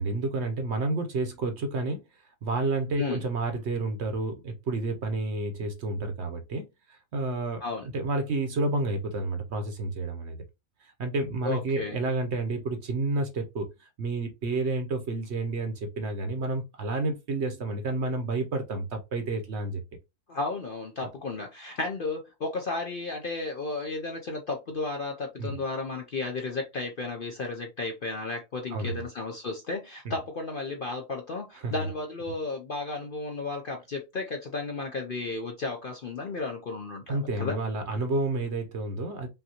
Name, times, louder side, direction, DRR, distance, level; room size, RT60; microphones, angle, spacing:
voice 1, 0.0-2.0 2.4-7.6 7.9-10.4 10.8-19.8 25.4-25.6 28.7-29.0 31.6-31.8 37.1-39.3, right 2 dB, 55° right, 0.9 m, -30 dB
voice 2, 11.4-12.0 20.3-37.6, left 3 dB, 55° left, 0.6 m, -33 dB
5.5 x 2.7 x 2.8 m
omnidirectional pair, 1.6 m